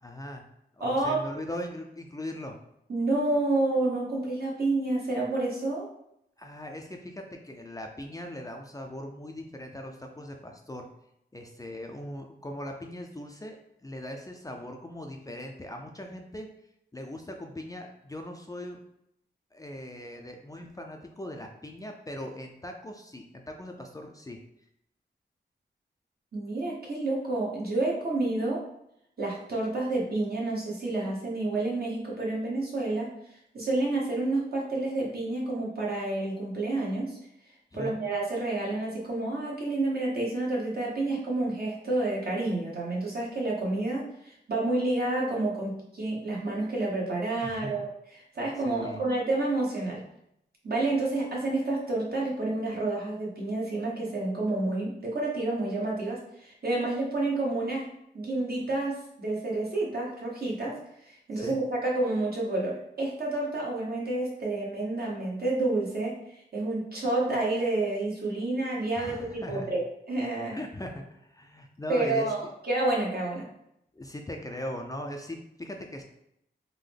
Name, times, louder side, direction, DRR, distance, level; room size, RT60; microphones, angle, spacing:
voice 1, 0.0-0.4 0.8-2.6 6.4-10.9 11.3-16.5 16.9-18.8 19.5-24.4 37.7-37.9 47.4-47.8 48.6-49.0 61.3-61.5 69.0-69.7 70.5-72.3 73.9-76.0, left 1 dB, 20° left, 2 dB, 0.4 m, -39 dB
voice 2, 0.8-1.2 2.9-5.9 26.3-28.6 29.2-33.1 33.5-37.2 37.7-47.9 48.3-50.0 50.6-57.9 58.1-60.8 61.0-66.1 66.5-70.6 71.9-73.5, right 2 dB, 60° right, -4 dB, 1.1 m, -29 dB
3.7 x 2.1 x 3.3 m, 0.77 s
cardioid pair, 60°, 18 cm